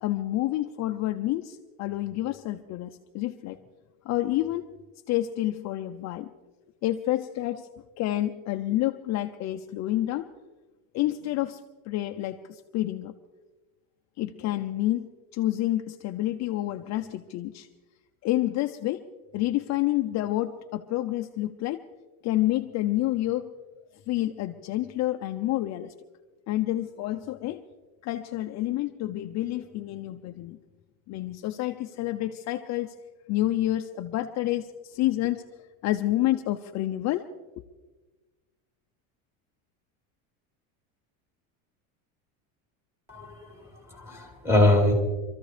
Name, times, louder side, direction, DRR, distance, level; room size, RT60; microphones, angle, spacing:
voice 1, 0.0-3.6 4.0-4.7 5.1-6.3 6.8-7.7 8.0-10.3 10.9-11.6 11.9-13.1 14.2-17.7 18.2-19.1 19.3-21.8 22.2-23.5 24.1-25.9 26.5-27.6 28.0-30.6 31.1-32.9 33.3-35.4 35.8-37.3, left 15 dB, 40° left, 6 dB, 0.6 m, -28 dB
voice 2, 43.1-44.9, left 1 dB, 5° right, -1 dB, 4.0 m, -23 dB
26.5 x 14.0 x 3.3 m, 1.2 s
cardioid pair, 140°, 42 cm